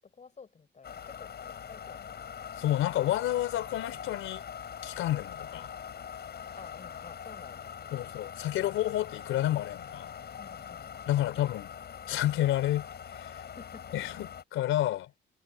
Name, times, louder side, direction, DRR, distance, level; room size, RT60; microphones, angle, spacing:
voice 1, 0.0-2.2 6.5-8.0 10.4-10.9 11.3-11.4 13.3-13.9, left 5 dB, 35° left, 5.0 m, -52 dB
sound 1, 0.8-14.4, left 8 dB, 55° left, 7.9 m, -43 dB
voice 2, 2.6-4.4 4.8-5.7 7.9-10.1 11.1-11.7 12.1-12.9 13.1-13.4 13.9-15.1, left 13 dB, 85° left, 3.6 m, -30 dB
cardioid pair, 90°, 20 cm